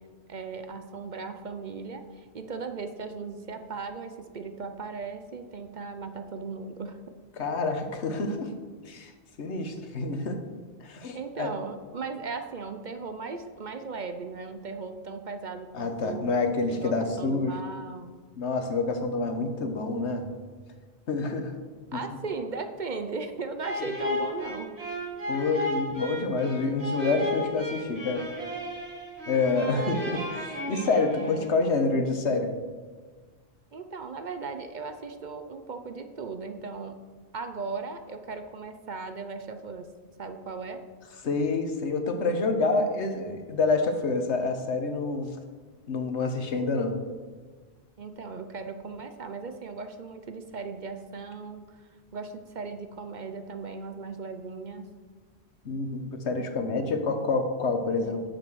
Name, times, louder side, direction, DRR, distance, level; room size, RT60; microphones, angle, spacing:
voice 1, 0.3-7.0 11.1-16.3 16.7-18.1 21.9-24.7 33.7-37.0 37.3-39.9 40.2-40.8 48.0-51.7 52.1-54.9 58.0-58.2, right 4 dB, 50° right, 8 dB, 0.7 m, -37 dB
voice 2, 7.4-8.5 8.9-9.1 9.4-10.4 10.8-11.5 15.7-17.6 18.4-20.3 21.1-21.5 21.9-22.0 25.3-28.3 29.3-32.6 41.2-45.3 45.9-47.0 55.6-58.2, left 3 dB, 85° left, 6 dB, 1.4 m, -27 dB
sound 1, 23.6-31.7, left 1 dB, 70° right, 2.7 m, -34 dB
9.0 x 7.3 x 6.2 m, 1.5 s
omnidirectional pair, 1.1 m